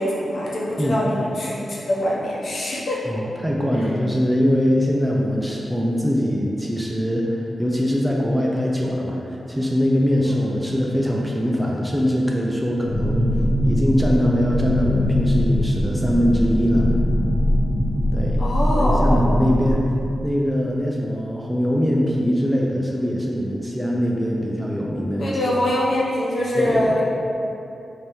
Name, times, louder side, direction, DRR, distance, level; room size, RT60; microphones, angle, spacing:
voice 1, 0.0-3.1 10.2-10.5 18.4-19.2 25.2-27.0, left 1 dB, 55° left, -5 dB, 0.8 m, -24 dB
voice 2, 3.1-13.3 13.6-16.9 18.1-18.4 18.7-19.9 20.2-25.4 26.6-27.0, equal, 5° right, -2 dB, 0.4 m, -22 dB
sound 1, 12.8-19.7, equal, 85° left, 1.1 m, -21 dB
3.5 x 2.7 x 4.5 m, 2.7 s
wide cardioid pair, 135°, 0 cm